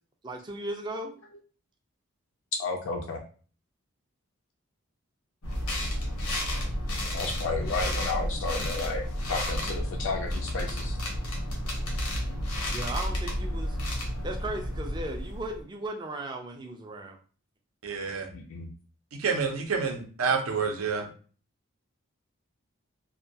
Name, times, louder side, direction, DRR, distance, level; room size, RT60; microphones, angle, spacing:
voice 1, 0.2-1.1 12.7-13.8 14.2-17.2, right 1 dB, 20° right, 3 dB, 0.3 m, -36 dB
voice 2, 2.6-3.2 7.0-11.0 18.3-18.7, left 3 dB, 65° left, 2 dB, 0.3 m, -33 dB
sound 1, 5.4-15.6, equal, 90° left, 0.8 m, -31 dB
voice 3, 17.8-18.3 19.2-21.1, right 5 dB, 85° right, 3 dB, 0.6 m, -28 dB
2.2 x 2.1 x 2.6 m, 0.40 s
head